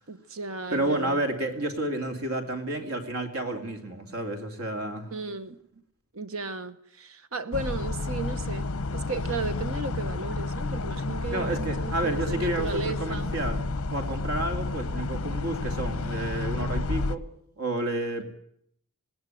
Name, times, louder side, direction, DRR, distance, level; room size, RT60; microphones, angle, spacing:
voice 1, 0.1-1.2 2.8-2.9 5.1-5.6 6.1-13.4, right 3 dB, 70° right, 1.2 m, -35 dB
voice 2, 0.7-5.1 11.3-17.2 17.6-18.2, right 1 dB, 85° right, 2.7 m, -30 dB
sound 1, 7.5-17.2, left 3 dB, 75° left, 0.8 m, -31 dB
19.0 x 18.0 x 9.2 m
head